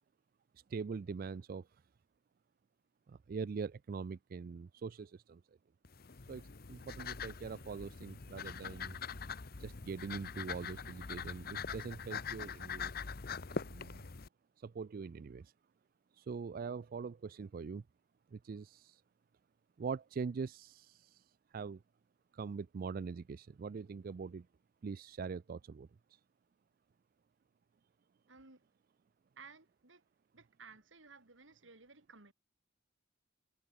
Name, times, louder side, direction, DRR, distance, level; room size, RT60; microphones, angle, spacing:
voice 1, 0.7-1.7 3.1-5.4 6.3-9.0 9.6-13.0 13.5-14.0 14.6-15.5 16.1-17.8 18.3-19.0 19.8-21.8 22.3-24.5 24.8-25.9, right 5 dB, 50° right, 0.4 m, -43 dB
sound 1, 5.8-14.3, left 6 dB, 50° left, 0.9 m, -43 dB
voice 2, 28.3-28.6 29.4-30.0 30.3-32.3, right 4 dB, 80° right, 3.7 m, -57 dB
head